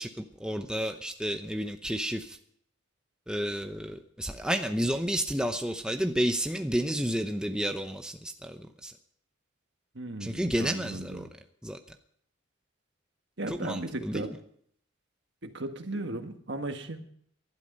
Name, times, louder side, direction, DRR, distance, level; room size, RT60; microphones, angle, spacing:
voice 1, 0.0-2.4 3.3-8.9 10.2-11.3 11.6-11.8 13.5-14.4, equal, 5° right, 5 dB, 0.7 m, -31 dB
voice 2, 9.9-11.3 13.4-14.3 15.4-17.0, right 2 dB, 60° right, 6 dB, 1.6 m, -36 dB
19.0 x 12.0 x 5.4 m, 0.66 s
head